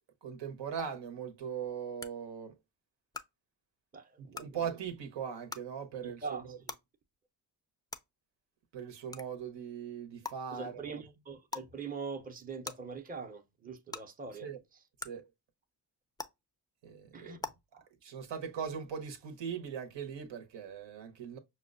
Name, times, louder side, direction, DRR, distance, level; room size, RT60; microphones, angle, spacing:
voice 1, 0.2-2.6 4.2-6.6 8.7-11.0 14.4-14.6 15.0-15.3 16.8-17.4 18.0-21.4, right 7 dB, 75° right, 0.9 m, -40 dB
sound 1, 0.8-0.9 2.0-2.1 3.1-3.2 4.3-4.4 5.5-5.6 6.7-6.8 7.9-8.0 9.1-9.2 10.2-10.3 11.5-11.7 12.6-12.7 13.9-14.0 15.0-15.1 16.2-16.3 17.4-17.5, left 3 dB, 10° left, 0.4 m, -39 dB
voice 2, 3.9-4.6 6.0-6.7 10.5-14.5 17.1-17.8, right 5 dB, 20° right, 0.7 m, -43 dB
5.7 x 2.2 x 2.4 m
cardioid pair, 70°, 43 cm